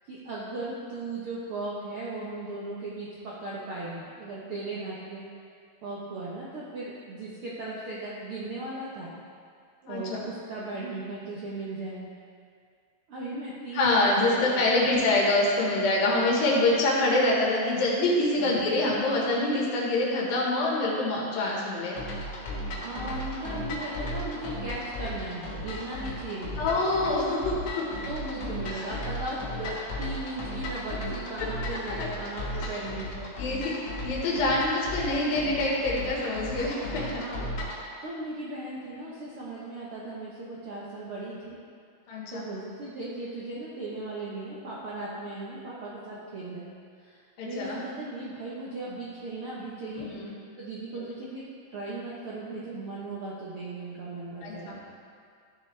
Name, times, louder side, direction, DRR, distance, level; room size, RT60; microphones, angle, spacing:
voice 1, 0.1-5.2 5.8-9.1 9.8-12.1 13.1-14.7 18.4-18.6 22.8-26.8 28.0-33.3 37.1-41.6 42.3-46.7 47.0-50.1 50.6-51.4 51.7-54.8, right 2 dB, 80° right, -7 dB, 1.2 m, -37 dB
voice 2, 9.9-10.2 13.7-21.9 26.6-27.9 28.7-28.8 32.0-32.1 32.6-32.7 33.4-37.1 42.1-42.5 47.4-47.8 50.0-50.3 54.4-54.8, left 2 dB, 80° left, -4 dB, 3.2 m, -25 dB
sound 1, 22.0-37.8, left 1 dB, 55° left, 1.8 m, -36 dB
13.0 x 6.9 x 3.3 m, 2.2 s
omnidirectional pair, 4.1 m